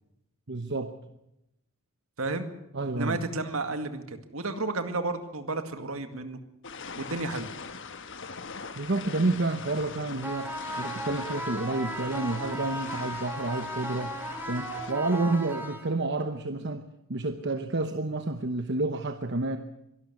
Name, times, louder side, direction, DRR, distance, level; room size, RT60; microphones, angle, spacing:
voice 1, 0.5-1.0 2.7-3.2 8.7-14.2 14.5-19.6, right 2 dB, 50° right, 8 dB, 1.0 m, -30 dB
voice 2, 2.2-2.5 2.9-6.4 7.0-7.5, right 2 dB, 70° right, 8 dB, 2.1 m, -32 dB
sound 1, 6.6-14.9, left 5 dB, 55° left, 1.3 m, -42 dB
sound 2, 10.2-16.2, right 1 dB, 10° right, 3.8 m, -36 dB
23.0 x 12.5 x 9.6 m, 0.87 s
head